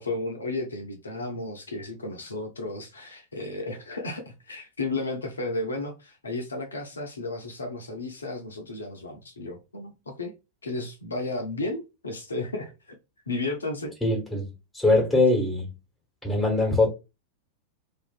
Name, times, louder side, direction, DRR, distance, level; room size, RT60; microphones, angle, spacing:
voice 1, 0.0-10.3 10.6-13.0 13.3-13.9, left 2 dB, 75° left, 0.5 m, -33 dB
voice 2, 14.0-14.5 14.7-15.7 16.2-16.9, left 2 dB, 5° left, 1.2 m, -22 dB
2.5 x 2.4 x 2.3 m
figure-of-eight pair, 90°, 0 cm